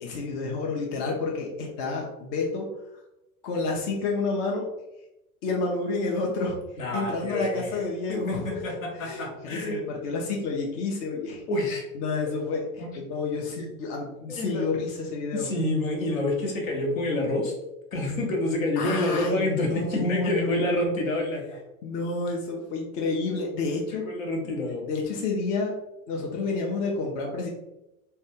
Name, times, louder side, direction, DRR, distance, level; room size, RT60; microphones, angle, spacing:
voice 1, 0.0-2.7 3.4-4.7 5.4-6.6 6.9-11.4 11.9-12.6 13.0-15.5 18.8-21.0 21.8-24.0 24.4-25.7 26.1-27.5, left 3 dB, 40° left, 0 dB, 0.6 m, -29 dB
voice 2, 6.8-7.8 8.1-9.8 11.5-11.9 12.8-12.9 14.3-14.7 15.3-17.5 17.9-21.4 23.9-24.9, left 1 dB, 65° left, 1 dB, 0.9 m, -28 dB
3.2 x 2.3 x 2.9 m, 0.93 s
figure-of-eight pair, 80°, 43 cm